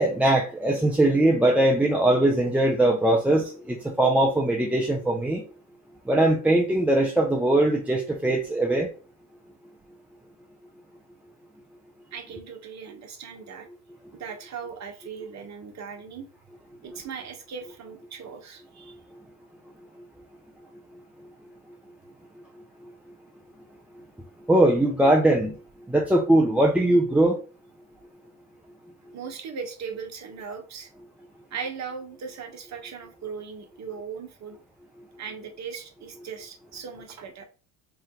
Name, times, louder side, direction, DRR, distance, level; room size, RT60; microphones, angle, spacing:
voice 1, 0.0-5.4 6.1-8.9 24.5-25.5 25.9-27.4, right 1 dB, 5° right, 0 dB, 0.4 m, -21 dB
voice 2, 12.1-13.7 14.1-16.3 16.8-19.0 29.1-30.9 31.5-34.6 35.2-37.4, right 6 dB, 35° right, 5 dB, 1.1 m, -38 dB
3.4 x 2.6 x 3.7 m, 0.37 s
hypercardioid pair, 75°, 45 cm